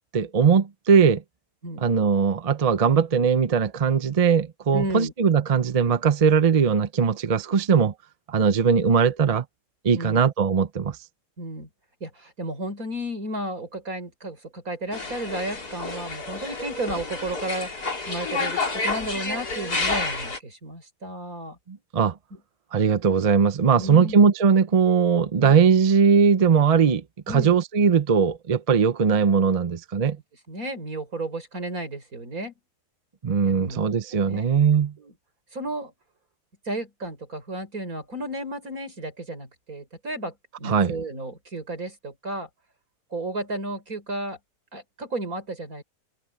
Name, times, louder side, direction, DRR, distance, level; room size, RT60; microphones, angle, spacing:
voice 1, 0.1-1.2 1.8-7.9 8.3-9.4 9.8-11.0 21.7-22.2 22.7-30.2 33.2-34.9 40.6-40.9, right 6 dB, 45° right, 0.5 m, -20 dB
voice 2, 4.7-5.1 9.9-10.2 11.4-11.7 12.0-21.6 22.3-22.4 23.7-24.2 25.4-25.6 27.3-27.6 30.5-32.5 33.4-33.9 34.3-34.4 35.0-35.1 35.5-35.9 36.7-42.5 43.1-44.4 44.7-45.8, right 1 dB, 65° right, 5.6 m, -33 dB
sound 1, 14.9-20.4, left 3 dB, 90° left, 4.2 m, -29 dB
omnidirectional pair, 1.6 m